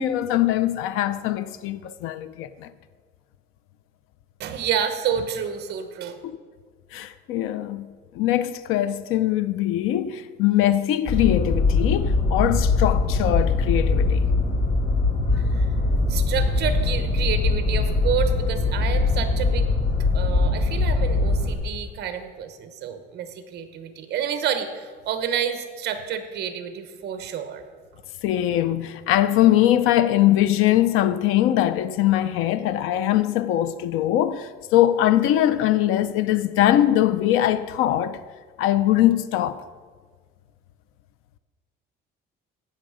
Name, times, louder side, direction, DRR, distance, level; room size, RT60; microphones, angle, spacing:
voice 1, 0.0-2.7 6.2-6.4 6.9-14.3 28.2-38.2 38.6-39.6, left 12 dB, 85° left, 0.6 m, -22 dB
voice 2, 4.4-6.2 15.3-15.6 16.1-19.7 20.1-27.6, right 8 dB, 55° right, 1.1 m, -29 dB
sound 1, 11.1-21.5, left 3 dB, 60° left, 1.8 m, -22 dB
16.0 x 6.4 x 5.0 m
cardioid pair, 170°, 21 cm